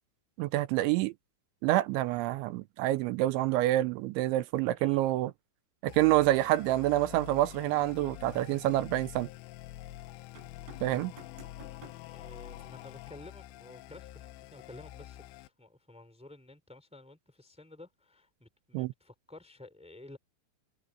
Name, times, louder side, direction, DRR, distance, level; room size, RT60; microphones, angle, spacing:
voice 1, 0.4-1.1 1.6-5.3 5.8-9.3 10.8-11.1 18.7-18.9, right 15 dB, 80° right, 2.8 m, -27 dB
sound 1, 5.9-15.5, left 15 dB, 80° left, 3.2 m, -47 dB
sound 2, 10.3-12.0 12.4-12.7 14.3-14.4, right 3 dB, 55° right, 9.6 m, -51 dB
voice 2, 12.1-20.2, left 2 dB, ahead, 3.9 m, -52 dB
omnidirectional pair, 5.9 m